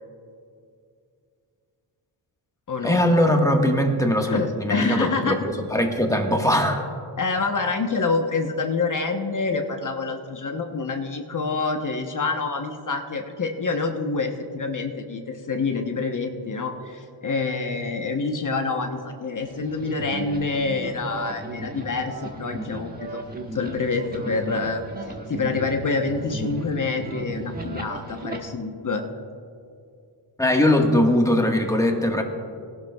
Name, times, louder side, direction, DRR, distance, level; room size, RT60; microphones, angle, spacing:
voice 1, 2.8-5.4 5.7-6.8 30.4-32.2, left 1 dB, 5° left, 2 dB, 1.5 m, -20 dB
voice 2, 4.2-5.5 7.1-24.8 25.3-29.0, left 4 dB, 40° left, 4 dB, 1.0 m, -27 dB
sound 1, 19.4-28.4, right 2 dB, 20° right, 1.4 m, -36 dB
18.5 x 12.0 x 2.3 m, 2.4 s
cardioid pair, 70°, 49 cm